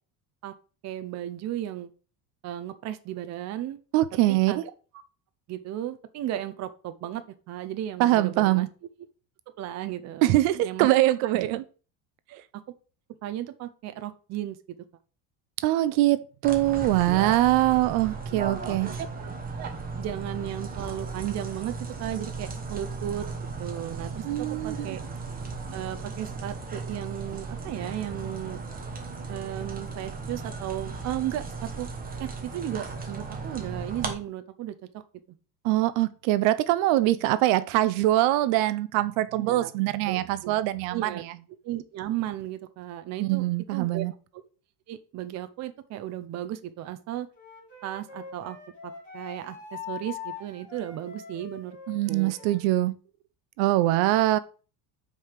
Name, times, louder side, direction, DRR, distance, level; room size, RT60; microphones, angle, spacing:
voice 1, 0.8-1.9 2.4-3.8 4.3-4.6 5.5-8.7 9.6-10.3 10.6-10.9 11.3-11.5 12.3-12.6 13.2-14.8 18.3-18.4 18.8-19.3 19.6-19.7 20.0-23.3 23.6-25.0 25.7-28.6 29.3-31.9 32.2-35.0 39.4-39.7 40.1-40.6 40.9-41.2 41.6-43.4 43.7-44.1 44.9-47.3 47.8-48.6 48.8-51.8 52.1-52.3, right 12 dB, 35° right, 0.6 m, -35 dB
voice 2, 3.9-4.5 8.0-8.7 10.2-11.6 15.6-18.9 24.2-25.0 35.6-41.1 43.2-44.1 51.9-53.0 53.6-54.4, right 16 dB, 70° right, 0.7 m, -23 dB
sound 1, 16.4-34.1, right 4 dB, 20° right, 1.1 m, -36 dB
Wind instrument woodwind instrument, 47.3-52.6, left 6 dB, 15° left, 4.0 m, -42 dB
5.4 x 4.9 x 5.8 m
cardioid pair, 155°, 49 cm